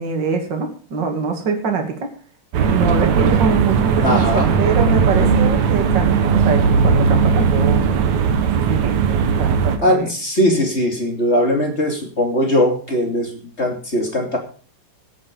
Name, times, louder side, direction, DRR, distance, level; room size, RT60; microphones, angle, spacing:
voice 1, 0.0-2.1 2.7-7.8 8.6-9.0 9.4-10.1, right 5 dB, 35° right, 4 dB, 2.7 m, -24 dB
sound 1, 2.5-9.8, right 6 dB, 65° right, 2.4 m, -17 dB
voice 2, 4.0-4.6 9.8-14.4, left 1 dB, 20° left, 2 dB, 2.6 m, -19 dB
16.5 x 8.7 x 5.4 m, 0.40 s
omnidirectional pair, 3.8 m